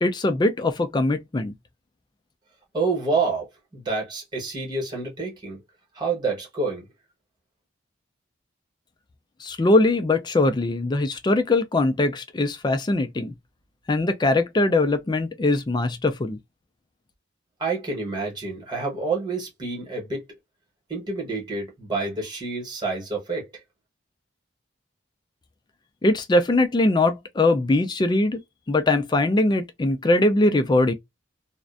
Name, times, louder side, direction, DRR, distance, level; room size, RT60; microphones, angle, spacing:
voice 1, 0.0-1.5 9.4-13.3 13.9-16.4 26.0-28.4 28.7-30.9, left 2 dB, 20° left, 0.3 m, -21 dB
voice 2, 2.7-5.6 5.9-6.9 17.6-20.2 20.9-23.5, right 3 dB, 20° right, 1.1 m, -28 dB
2.5 x 2.1 x 2.4 m
head